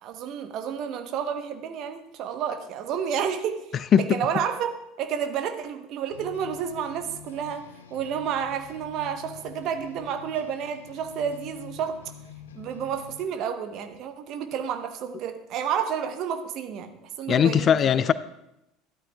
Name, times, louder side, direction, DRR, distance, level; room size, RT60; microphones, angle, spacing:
voice 1, 0.0-3.6 4.1-4.7 5.0-12.0 12.5-17.7, right 8 dB, 50° right, 1.0 m, -30 dB
sound 1, 6.1-13.3, left 7 dB, 75° left, 0.6 m, -46 dB
voice 2, 17.3-18.1, left 8 dB, 35° left, 0.3 m, -19 dB
14.0 x 12.5 x 2.3 m
figure-of-eight pair, 70°, 0 cm